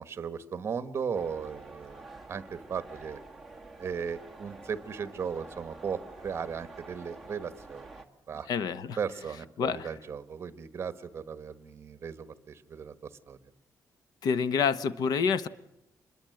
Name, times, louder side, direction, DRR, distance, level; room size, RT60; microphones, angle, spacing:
voice 1, 0.0-3.2 3.8-8.5 9.0-13.4, right 6 dB, 40° right, 14 dB, 1.4 m, -37 dB
sound 1, 1.1-8.0, right 2 dB, ahead, 1.8 m, -48 dB
voice 2, 8.5-9.0 9.6-9.9 14.2-15.5, left 6 dB, 85° left, 15 dB, 1.1 m, -27 dB
26.5 x 21.5 x 7.9 m, 0.80 s
wide cardioid pair, 175°, 7 cm